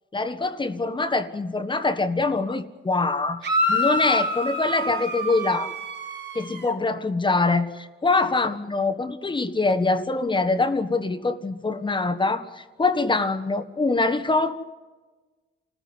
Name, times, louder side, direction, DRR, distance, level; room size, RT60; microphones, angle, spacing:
voice 1, 0.1-5.7 6.3-14.7, left 3 dB, 25° left, 9 dB, 1.5 m, -24 dB
sound 1, 3.4-6.7, left 1 dB, 60° right, 4.0 m, -26 dB
27.5 x 15.0 x 9.7 m, 1.3 s
cardioid pair, 90°, 20 cm